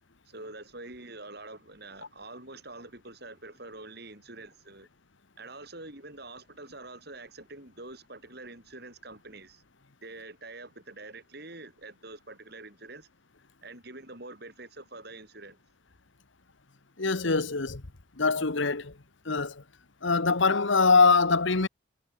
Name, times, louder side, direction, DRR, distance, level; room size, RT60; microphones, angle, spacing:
voice 1, 0.3-4.9 5.4-9.6 10.0-13.1 13.6-15.6, right 2 dB, 50° right, 6.5 m, -45 dB
voice 2, 17.0-17.8 18.2-18.9 19.3-19.6 20.0-21.7, left 4 dB, 70° left, 1.3 m, -23 dB
head